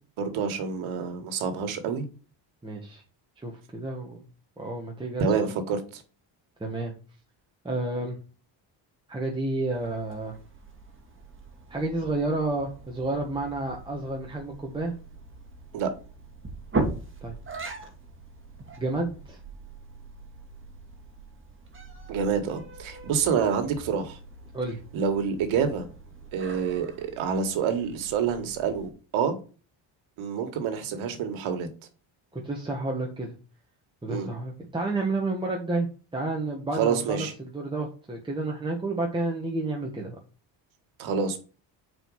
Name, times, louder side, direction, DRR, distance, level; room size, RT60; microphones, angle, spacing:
voice 1, 0.2-2.0 5.2-6.0 15.7-15.9 22.1-24.2 24.9-25.9 26.3-29.3 30.2-31.7 34.1-34.3 36.8-37.3 41.0-41.4, right 6 dB, 85° right, 1.7 m, -27 dB
voice 2, 2.6-3.0 3.4-4.2 4.6-5.5 6.6-6.9 7.6-8.2 9.1-10.3 11.7-14.9 17.2-17.3 18.8-19.4 24.5-24.8 32.3-33.3 34.0-40.1, right 2 dB, 10° right, 1.4 m, -30 dB
sound 1, 9.7-28.9, right 3 dB, 25° right, 2.0 m, -40 dB
5.1 x 4.8 x 6.3 m
cardioid pair, 120°, 46 cm